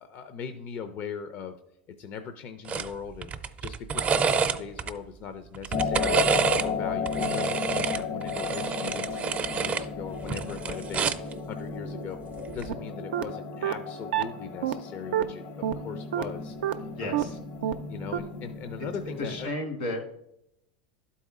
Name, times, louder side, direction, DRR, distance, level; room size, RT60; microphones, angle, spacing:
voice 1, 0.0-1.6 2.0-12.2 12.5-17.4 17.9-19.5, left 6 dB, 45° left, 8 dB, 0.5 m, -40 dB
sound 1, 2.7-2.9 3.2-4.9 5.5-6.7 7.1-9.9 10.2-11.3 12.5-12.7, right 6 dB, 25° right, 0.5 m, -28 dB
sound 2, 5.7-19.5, left 5 dB, 65° left, 0.9 m, -34 dB
sound 3, 12.7-12.8 13.1-13.2 13.6-13.7 14.1-14.2 14.6-14.7 15.1-15.2 15.6-15.7 16.1-16.2 16.6-16.7 17.1-17.2 17.6-17.7 18.1-18.2, right 11 dB, 85° right, 0.5 m, -26 dB
voice 2, 16.9-17.4 19.2-20.0, left 1 dB, 80° left, 2 dB, 2.5 m, -33 dB
11.5 x 4.1 x 3.7 m, 0.81 s
hypercardioid pair, 105°, 5 cm